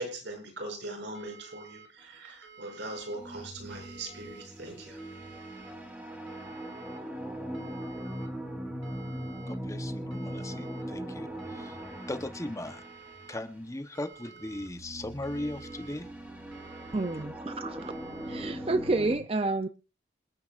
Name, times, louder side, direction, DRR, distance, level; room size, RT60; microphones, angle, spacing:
voice 1, 0.0-5.0, right 2 dB, 65° right, 2 dB, 7.1 m, -40 dB
sound 1, 1.1-1.9 2.4-3.2 3.7-4.4 5.0-5.7 6.3-7.0 7.5-8.3 8.8-9.6 10.1-10.8 11.4-12.1 12.7-13.4 13.9-14.7 15.2-16.0 16.5-17.2 17.8-18.5, right 6 dB, 80° right, 2.9 m, -51 dB
sound 2, 3.1-13.4 14.4-19.2, equal, 10° right, 3.3 m, -40 dB
voice 2, 9.5-12.8 13.3-16.1, left 1 dB, 15° left, 9 dB, 0.9 m, -38 dB
voice 3, 16.9-17.9 18.3-19.7, right 2 dB, 30° right, 11 dB, 0.5 m, -29 dB
27.5 x 9.5 x 2.5 m, 0.33 s
head